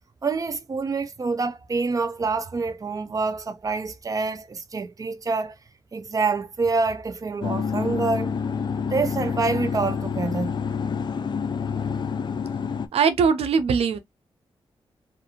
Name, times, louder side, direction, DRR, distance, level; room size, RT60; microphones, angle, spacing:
voice 1, 0.2-5.5 5.9-8.3 8.8-10.5, right 4 dB, 35° right, 0.5 m, -26 dB
sound 1, 7.4-12.9, left 6 dB, 50° left, 0.4 m, -28 dB
voice 2, 12.9-14.0, right 6 dB, 90° right, 0.4 m, -20 dB
2.5 x 2.4 x 2.8 m
wide cardioid pair, 90°, 10 cm